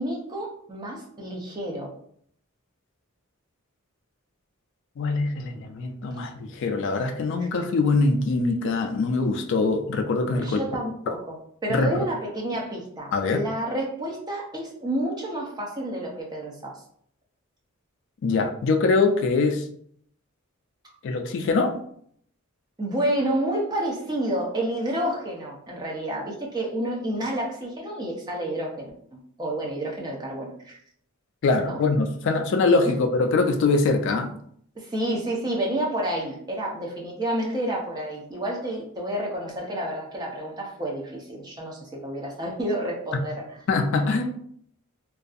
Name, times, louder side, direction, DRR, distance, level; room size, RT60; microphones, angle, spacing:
voice 1, 0.0-1.9 10.4-16.8 22.8-28.9 29.4-30.8 31.6-31.8 34.8-43.6, right 1 dB, 20° right, -2 dB, 0.5 m, -29 dB
voice 2, 5.0-10.6 11.7-11.9 13.1-13.5 18.2-19.6 21.0-21.8 31.4-34.3 43.7-44.3, left 3 dB, 60° left, 5 dB, 0.3 m, -23 dB
2.6 x 2.3 x 2.4 m, 0.64 s
head